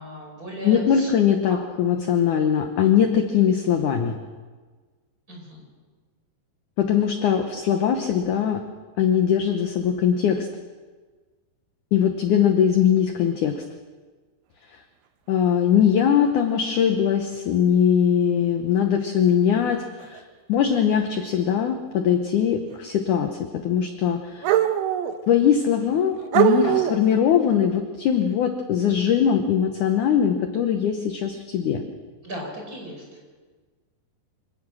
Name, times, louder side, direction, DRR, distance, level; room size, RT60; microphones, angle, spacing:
voice 1, 0.0-1.6 5.3-5.6 26.2-26.8 32.2-33.0, equal, 20° right, -1 dB, 5.6 m, -37 dB
voice 2, 0.6-4.2 6.8-8.6 9.0-10.5 11.9-13.5 15.3-20.2 20.5-24.5 25.3-31.8, left 8 dB, 70° left, 6 dB, 2.0 m, -21 dB
sound 1, 17.4-17.5 18.9-19.0 20.0-20.2 22.7-22.8 24.4-25.2 25.9-26.0 26.3-27.1, right 10 dB, 85° right, 3.0 m, -21 dB
26.0 x 17.5 x 6.3 m, 1.4 s
omnidirectional pair, 4.7 m